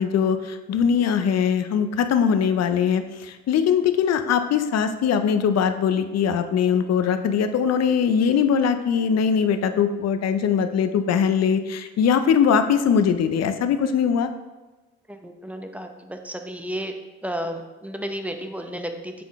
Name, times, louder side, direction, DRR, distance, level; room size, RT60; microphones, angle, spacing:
voice 1, 0.0-14.3, left 7 dB, 60° left, 9 dB, 0.6 m, -21 dB
voice 2, 15.1-16.9 17.2-19.2, equal, 5° right, 5 dB, 0.6 m, -32 dB
7.6 x 3.7 x 3.6 m, 1.2 s
cardioid pair, 90°, 30 cm